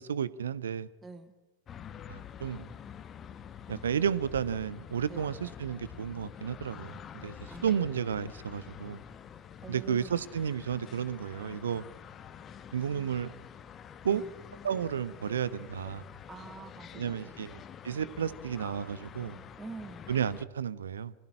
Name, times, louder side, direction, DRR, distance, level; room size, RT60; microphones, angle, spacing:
voice 1, 0.0-0.9 2.1-2.7 3.7-9.0 9.7-11.8 12.7-13.3 14.0-14.2 14.6-16.0 16.9-19.4 20.1-21.1, right 8 dB, 65° right, 1.0 m, -32 dB
voice 2, 1.0-1.3 5.1-5.3 7.5-7.9 9.6-10.1 14.1-14.3 16.3-17.4 19.6-20.1, right 4 dB, 15° right, 1.7 m, -46 dB
sound 1, 1.7-20.5, left 8 dB, 25° left, 1.2 m, -47 dB
26.0 x 16.5 x 10.0 m
figure-of-eight pair, 90°, 0 cm